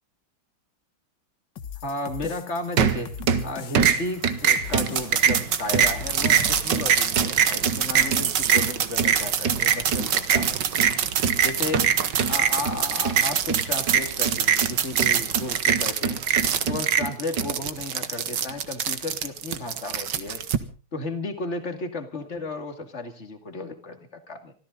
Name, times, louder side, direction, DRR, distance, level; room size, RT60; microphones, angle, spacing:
sound 1, 1.6-6.9, left 9 dB, 65° left, 1.9 m, -40 dB
voice 1, 1.8-10.6 11.4-11.9 12.3-16.2 16.7-20.5 20.9-24.5, left 2 dB, 35° left, 7 dB, 2.5 m, -34 dB
sound 2, 2.8-3.5 3.8-20.6, right 8 dB, 60° right, 1.8 m, -23 dB
25.5 x 14.5 x 3.9 m, 0.37 s
omnidirectional pair, 2.2 m